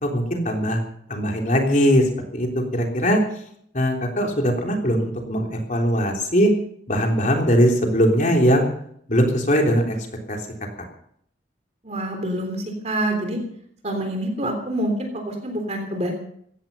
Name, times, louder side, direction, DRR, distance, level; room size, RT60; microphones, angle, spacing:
voice 1, 0.0-0.8 1.1-2.1 2.3-3.2 3.7-6.5 6.9-8.6 9.1-10.0 10.3-10.4, equal, 40° left, 2 dB, 3.5 m, -20 dB
voice 2, 11.8-13.4 13.8-16.1, right 1 dB, 35° right, 4 dB, 3.4 m, -26 dB
17.0 x 15.0 x 5.6 m, 0.67 s
head